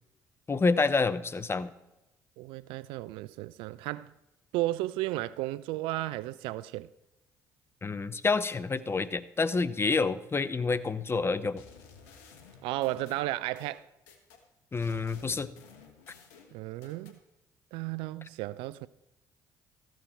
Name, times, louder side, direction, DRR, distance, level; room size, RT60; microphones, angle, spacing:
voice 1, 0.5-1.7 7.8-11.6 14.7-15.5, left 4 dB, 30° left, 0.8 m, -28 dB
voice 2, 2.4-4.1 4.5-6.9 12.6-13.9 16.5-17.1 17.7-18.9, right 17 dB, 75° right, 0.4 m, -34 dB
sound 1, 11.6-14.4 14.8-17.2, left 5 dB, 80° left, 1.4 m, -54 dB
14.0 x 9.1 x 4.5 m
hypercardioid pair, 55°, 9 cm